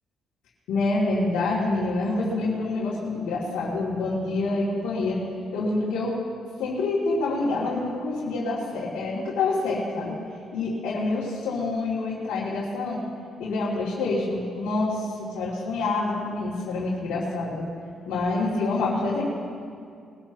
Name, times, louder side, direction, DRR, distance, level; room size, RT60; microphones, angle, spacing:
voice 1, 0.7-5.2 5.5-6.2 6.6-10.2 10.5-13.0 13.4-17.7 18.0-19.2, left 3 dB, 85° left, -8 dB, 2.9 m, -27 dB
22.5 x 13.5 x 3.1 m, 2.3 s
supercardioid pair, 65°, 0 cm